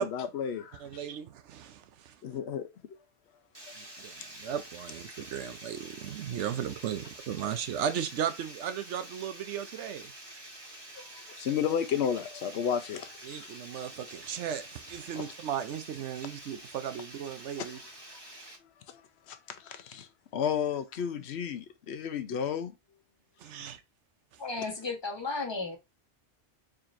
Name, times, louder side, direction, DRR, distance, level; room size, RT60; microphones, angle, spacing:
voice 1, 0.0-1.0 2.2-2.7 11.4-13.5 15.2-15.3 17.7-17.8 18.9-19.0 19.3-22.7, left 8 dB, 70° left, 0.9 m, -33 dB
voice 2, 0.8-2.1 3.8-10.1 13.2-17.8 23.4-23.8, right 9 dB, 80° right, 0.9 m, -36 dB
Water, 3.5-18.6, right 1 dB, 20° right, 1.2 m, -48 dB
voice 3, 24.4-25.8, left 3 dB, 25° left, 1.1 m, -34 dB
4.4 x 3.8 x 2.5 m
omnidirectional pair, 1.2 m